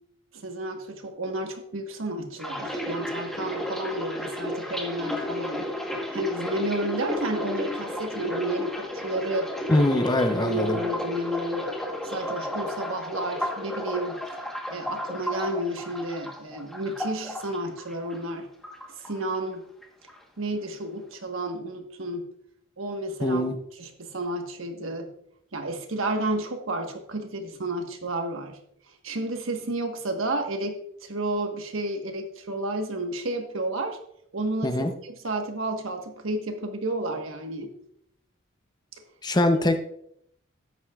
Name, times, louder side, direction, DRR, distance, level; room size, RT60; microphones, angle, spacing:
voice 1, 0.3-5.7 6.1-9.5 10.4-11.7 12.0-14.2 14.7-18.5 19.0-19.6 20.4-22.3 22.8-25.1 25.5-28.6 29.0-34.0 34.3-37.7, right 1 dB, 80° right, 5 dB, 1.3 m, -31 dB
sound 1, 2.4-18.4 18.6-19.6 19.8-20.2, left 1 dB, ahead, 1.1 m, -33 dB
voice 2, 9.7-10.8 23.2-23.6 34.6-34.9 39.2-39.8, left 1 dB, 20° left, 7 dB, 0.7 m, -22 dB
12.5 x 9.5 x 2.4 m, 0.72 s
head